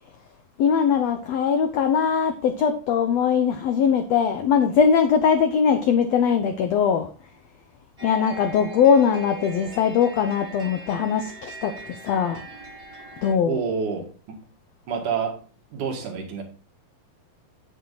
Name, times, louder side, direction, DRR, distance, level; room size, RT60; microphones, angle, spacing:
voice 1, 0.6-7.1 8.0-12.5 13.2-13.6, left 7 dB, 90° left, 8 dB, 1.4 m, -21 dB
sound 1, 8.0-13.3, right 3 dB, 15° right, 2.6 m, -40 dB
voice 2, 13.5-14.4 14.9-15.4 15.7-16.4, right 6 dB, 60° right, 2 dB, 3.1 m, -28 dB
9.2 x 7.8 x 4.0 m, 0.35 s
omnidirectional pair, 4.1 m